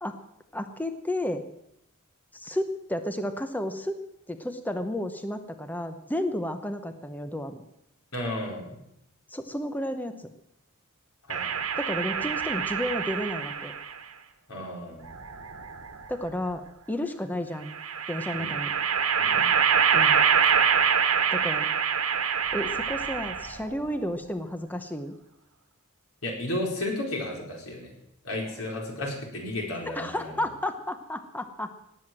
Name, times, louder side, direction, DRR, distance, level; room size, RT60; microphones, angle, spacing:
voice 1, 0.5-1.4 2.3-3.9 4.3-7.6 9.3-10.3 11.8-13.7 16.1-16.6 16.9-17.8 18.1-18.7 19.9-20.2 21.3-21.7 22.5-25.1 29.9-31.8, left 1 dB, 10° left, 8 dB, 0.8 m, -32 dB
voice 2, 8.1-8.8 11.3-11.6 12.2-12.3 14.5-15.1 18.3-18.5 19.2-19.5 26.2-27.9 28.2-30.4, left 1 dB, 85° left, 0 dB, 4.5 m, -33 dB
sound 1, 11.3-13.9 15.1-16.1 17.7-23.7, right 7 dB, 85° right, 1.4 m, -25 dB
18.5 x 7.8 x 7.6 m, 0.79 s
head